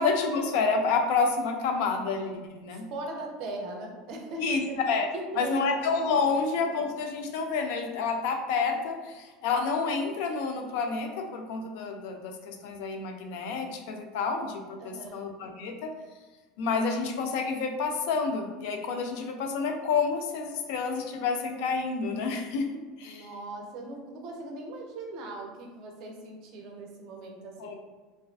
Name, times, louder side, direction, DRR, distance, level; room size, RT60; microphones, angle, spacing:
voice 1, 0.0-2.9 4.4-5.1 5.4-15.9 16.6-23.3 27.6-27.7, left 4 dB, 70° left, 4 dB, 0.3 m, -29 dB
voice 2, 2.7-4.6 5.1-5.6 14.8-15.2 23.0-27.7, right 2 dB, 50° right, 1 dB, 0.4 m, -39 dB
2.4 x 2.3 x 2.2 m, 1.2 s
cardioid pair, 160°, 0 cm